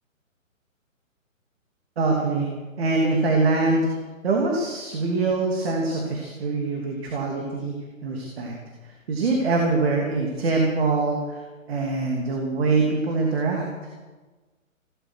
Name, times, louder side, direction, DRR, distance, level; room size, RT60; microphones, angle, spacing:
voice 1, 2.0-2.5 2.8-3.9 4.2-7.7 8.0-8.5 9.1-11.4 11.7-13.7, right 3 dB, 45° right, 0 dB, 2.7 m, -23 dB
16.5 x 12.5 x 6.3 m, 1.3 s
hypercardioid pair, 160°, 41 cm